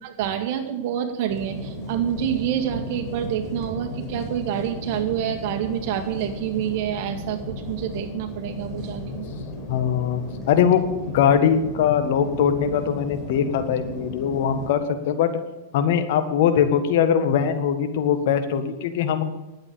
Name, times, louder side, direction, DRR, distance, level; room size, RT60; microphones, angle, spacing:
voice 1, 0.0-9.3, right 10 dB, 55° right, 5 dB, 2.1 m, -27 dB
sound 1, 1.3-14.7, left 2 dB, 30° left, 4.5 m, -35 dB
voice 2, 9.7-15.3 15.7-19.2, left 8 dB, 60° left, 9 dB, 1.5 m, -21 dB
11.0 x 8.7 x 8.7 m, 1.1 s
hypercardioid pair, 105°, 0 cm